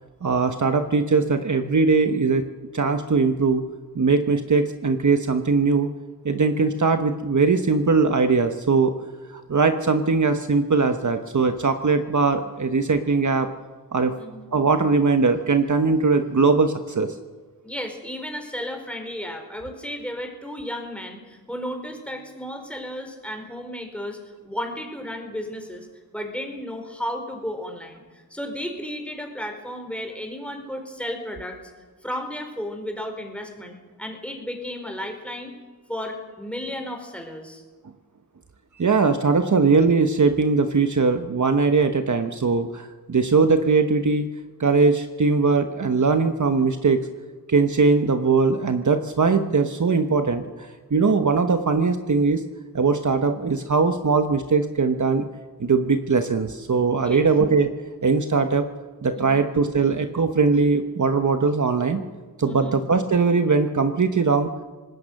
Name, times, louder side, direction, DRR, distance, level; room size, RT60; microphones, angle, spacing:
voice 1, 0.2-2.4 2.7-3.6 3.9-5.9 6.2-8.9 9.3-13.5 13.9-14.1 14.5-17.2 38.8-44.3 44.6-47.0 47.5-52.4 52.7-55.2 55.6-57.7 58.0-58.7 59.0-62.0 62.4-64.5, right 4 dB, 50° right, 7 dB, 1.2 m, -20 dB
voice 2, 14.2-14.5 17.6-24.2 24.4-25.9 26.1-31.6 32.0-35.5 35.9-37.6 57.0-57.2 59.1-59.5 62.4-62.8, equal, 5° left, 3 dB, 4.5 m, -33 dB
25.5 x 19.5 x 6.5 m, 1.3 s
wide cardioid pair, 85°, 38 cm